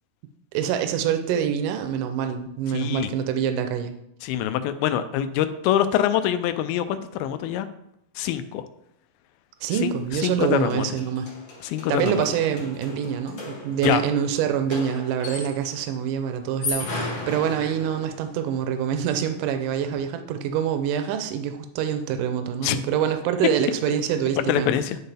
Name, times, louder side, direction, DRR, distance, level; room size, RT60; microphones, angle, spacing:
voice 1, 0.5-3.9 9.6-11.3 11.9-24.7, right 8 dB, 80° right, 8 dB, 2.0 m, -25 dB
voice 2, 2.7-3.1 4.2-7.7 8.2-8.6 9.8-9.9 10.2-11.0 11.6-12.3 13.8-14.0 22.6-22.8 24.5-25.0, left 10 dB, 85° left, 11 dB, 2.4 m, -24 dB
sound 1, 9.8-9.9 10.1-15.8 16.4-18.2, left 2 dB, 55° left, 1.4 m, -35 dB
10.5 x 4.4 x 3.4 m, 0.78 s
omnidirectional pair, 4.3 m